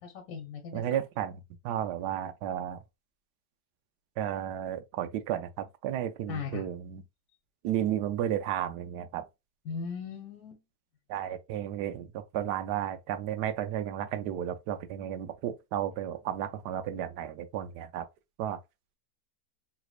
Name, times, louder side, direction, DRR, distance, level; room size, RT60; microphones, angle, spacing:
voice 1, 0.0-1.0 6.3-6.7 9.6-10.6, left 5 dB, 60° left, 1.4 m, -38 dB
voice 2, 0.7-2.8 4.2-7.0 7.6-9.2 11.1-18.1 18.4-18.6, right 10 dB, 80° right, 1.2 m, -33 dB
3.4 x 3.1 x 2.3 m
omnidirectional pair, 1.8 m